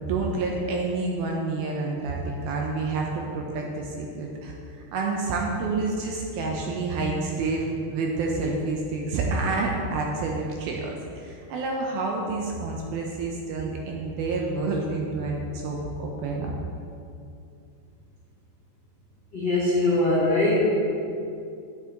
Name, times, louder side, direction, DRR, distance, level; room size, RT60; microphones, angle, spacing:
voice 1, 0.0-16.5, right 3 dB, 75° right, 0 dB, 2.4 m, -28 dB
voice 2, 19.3-20.6, left 2 dB, 35° left, -9 dB, 1.9 m, -22 dB
9.6 x 8.1 x 3.8 m, 2.5 s
omnidirectional pair, 4.8 m